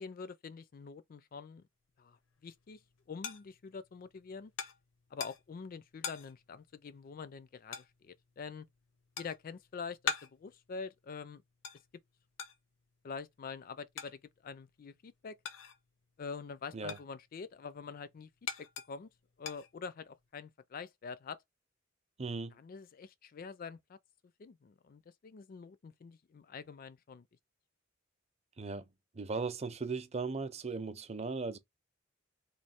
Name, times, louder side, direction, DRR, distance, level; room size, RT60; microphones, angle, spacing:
voice 1, 0.0-1.6 2.0-2.8 3.1-4.5 5.1-8.7 9.2-11.4 13.0-15.4 16.2-18.3 18.6-19.1 19.4-21.4 22.5-24.0 24.4-27.3, left 5 dB, 45° left, 0.4 m, -46 dB
sound 1, 2.2-16.0 16.3-20.3, left 6 dB, 85° left, 0.7 m, -44 dB
voice 2, 22.2-22.6 28.6-28.8 29.1-31.6, right 4 dB, 35° right, 0.5 m, -37 dB
3.2 x 2.6 x 4.3 m
head